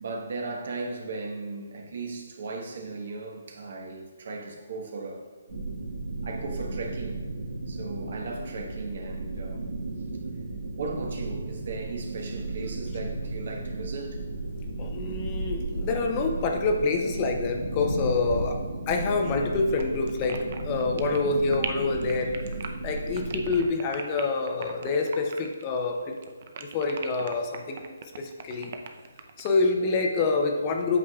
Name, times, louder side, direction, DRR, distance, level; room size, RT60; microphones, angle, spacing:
voice 1, 0.0-5.3 6.2-7.2 7.7-9.6 10.7-14.2 23.4-23.7 29.8-30.0, right 3 dB, 60° right, 2 dB, 1.2 m, -37 dB
sound 1, 5.5-23.6, right 3 dB, 85° right, 1.8 m, -35 dB
sound 2, 14.1-23.7, left 2 dB, 90° left, 1.6 m, -39 dB
voice 2, 14.8-18.6 18.9-22.3 22.8-26.1 26.6-27.8 28.2-28.7 29.4-31.0, left 3 dB, 25° left, 3 dB, 0.6 m, -27 dB
sound 3, 19.7-25.9 26.1-29.6, right 6 dB, 45° right, 0.6 m, -39 dB
8.4 x 6.1 x 2.4 m, 1.5 s
hypercardioid pair, 160°, 0 cm